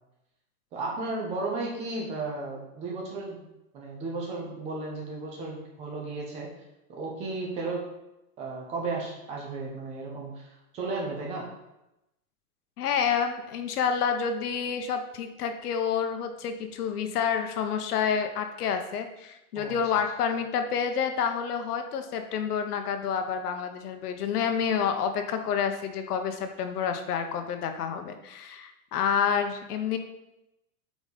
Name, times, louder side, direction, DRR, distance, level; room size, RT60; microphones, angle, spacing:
voice 1, 0.7-3.4 3.7-6.5 6.9-7.8 8.4-10.4 10.7-11.5 19.6-19.8, right 3 dB, 15° right, -2 dB, 0.8 m, -34 dB
voice 2, 12.8-30.0, left 7 dB, 90° left, 7 dB, 1.0 m, -29 dB
5.1 x 4.0 x 5.0 m, 0.90 s
supercardioid pair, 175°, 45 cm